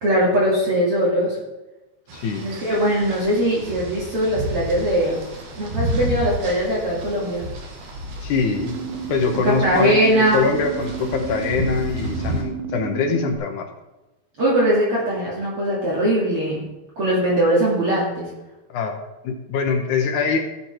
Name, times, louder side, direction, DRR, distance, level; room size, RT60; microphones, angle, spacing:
voice 1, 0.0-1.4 2.4-5.2 5.6-7.5 9.4-10.4 14.4-16.6 17.0-18.3, right 1 dB, 40° right, -6 dB, 2.8 m, -20 dB
voice 2, 2.1-2.4 8.2-8.8 9.1-13.7 18.7-19.0 19.2-20.4, left 5 dB, 65° left, 4 dB, 2.1 m, -23 dB
sound 1, 2.1-12.4, right 1 dB, 55° right, 3.1 m, -31 dB
sound 2, 8.4-13.4, right 6 dB, 85° right, 2.8 m, -31 dB
17.5 x 6.6 x 4.4 m, 1.0 s
omnidirectional pair, 4.6 m